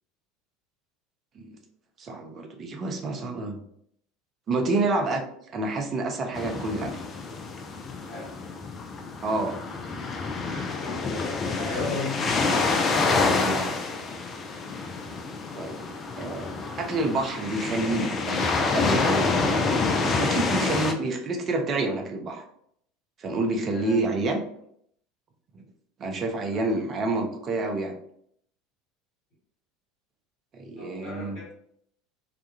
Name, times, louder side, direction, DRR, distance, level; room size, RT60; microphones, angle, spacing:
voice 1, 2.0-3.6 4.5-5.2 5.5-7.0 9.2-9.5 13.0-13.9 15.5-15.8 16.2-16.5 16.8-19.8 20.2-22.4 23.2-24.4 25.5-25.6 26.0-27.9 30.5-31.4, right 2 dB, 35° right, 3 dB, 0.5 m, -28 dB
sound 1, 6.3-20.9, left 4 dB, 30° left, 0.4 m, -27 dB
voice 2, 8.0-8.4 9.7-9.9 10.5-12.2 23.7-24.0 26.5-26.7 30.8-31.5, left 3 dB, 50° left, -7 dB, 1.1 m, -37 dB
2.3 x 2.1 x 2.8 m, 0.67 s
figure-of-eight pair, 70°, 0 cm